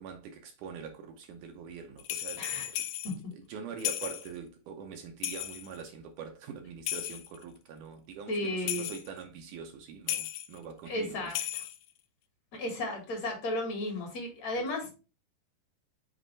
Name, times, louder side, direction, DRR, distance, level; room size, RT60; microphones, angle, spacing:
voice 1, 0.0-2.7 3.3-11.3 14.6-14.7, right 6 dB, 75° right, 2.2 m, -44 dB
sound 1, 2.0-3.2 3.8-4.3 5.2-5.8 6.9-7.4 8.7-9.1 10.1-10.6 11.3-11.9, left 13 dB, 80° left, 2.1 m, -35 dB
voice 2, 2.4-2.7 3.0-3.1 8.3-8.9 10.9-11.4 12.5-14.9, left 1 dB, 55° left, 2.7 m, -34 dB
7.5 x 4.5 x 3.2 m
omnidirectional pair, 4.0 m